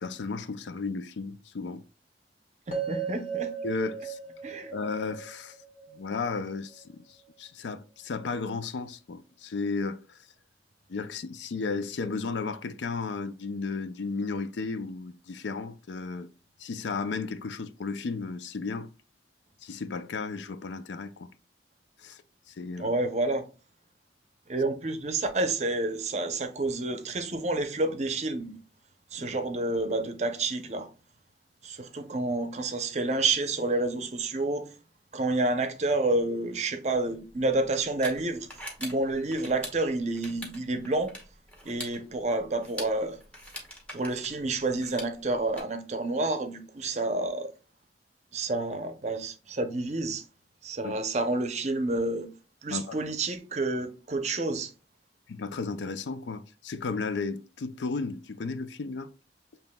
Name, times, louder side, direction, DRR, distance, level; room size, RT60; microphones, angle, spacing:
voice 1, 0.0-1.8 3.6-4.2 4.7-5.6 5.9-10.2 10.9-16.3 16.6-18.9 19.6-21.3 22.0-22.2 22.5-22.9 29.2-29.3 50.8-51.0 52.7-53.0 55.3-59.1, left 4 dB, 85° left, 0.4 m, -34 dB
sound 1, 2.7-6.8, right 6 dB, 50° left, 1.5 m, -37 dB
voice 2, 2.7-3.5 4.4-4.7 22.8-23.4 24.5-28.6 29.1-30.9 31.6-34.7 35.1-38.5 38.8-41.1 41.6-43.2 43.9-47.5 48.3-50.2 50.6-52.3 52.6-54.7, right 2 dB, 40° right, 0.6 m, -29 dB
sound 2, 36.9-45.6, equal, 10° left, 0.9 m, -44 dB
7.1 x 2.9 x 2.2 m
head